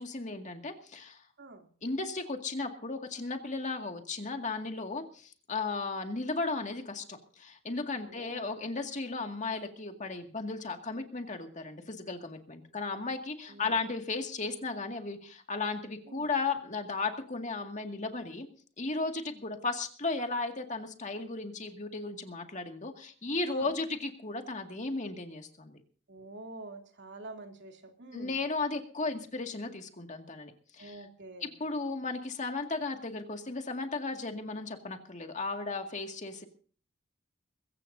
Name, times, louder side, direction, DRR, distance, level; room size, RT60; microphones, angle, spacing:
voice 1, 0.0-1.2 1.8-18.5 18.8-25.8 28.1-31.1 31.4-36.4, left 3 dB, 35° left, 4 dB, 2.1 m, -35 dB
voice 2, 7.9-8.5 13.5-13.8 16.1-16.3 23.5-23.7 26.1-28.4 30.8-31.5, right 2 dB, 60° right, 3 dB, 2.9 m, -47 dB
22.5 x 16.0 x 2.7 m, 0.43 s
head